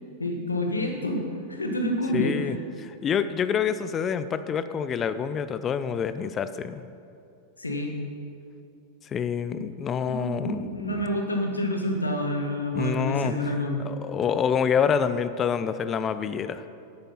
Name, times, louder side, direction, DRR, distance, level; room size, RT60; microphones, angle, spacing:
voice 1, 0.2-2.5 7.6-8.0 9.5-9.7 10.1-13.8, left 1 dB, 80° left, 2 dB, 1.4 m, -28 dB
voice 2, 2.1-6.8 9.0-11.0 12.8-13.3 13.8-16.6, left 7 dB, 25° left, 12 dB, 0.4 m, -27 dB
10.5 x 9.0 x 5.6 m, 2.5 s
figure-of-eight pair, 90°, 0 cm